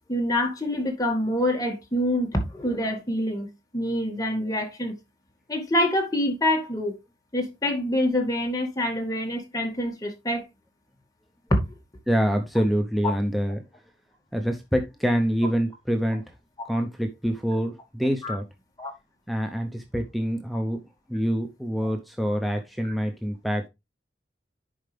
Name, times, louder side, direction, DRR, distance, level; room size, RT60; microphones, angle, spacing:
voice 1, 0.1-3.5 3.7-4.9 5.5-6.9 7.3-10.4 18.2-18.3 18.8-18.9 21.8-21.9, left 1 dB, 20° left, 2.1 m, -26 dB
voice 2, 12.1-13.6 14.3-16.3 16.7-18.4 19.3-20.8 21.1-23.7, equal, ahead, 0.7 m, -26 dB
10.5 x 4.7 x 3.4 m
head